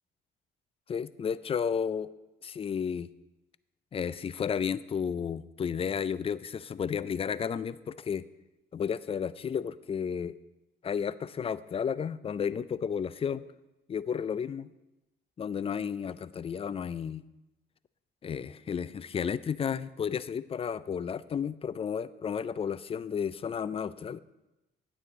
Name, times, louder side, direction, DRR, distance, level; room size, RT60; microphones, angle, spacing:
voice 1, 0.9-2.1 2.4-3.1 3.9-8.2 8.7-10.3 10.8-13.4 13.9-14.7 15.4-17.2 18.2-24.2, left 7 dB, 30° left, 17 dB, 0.3 m, -32 dB
9.7 x 8.4 x 3.6 m, 0.98 s
cardioid pair, 90°, 20 cm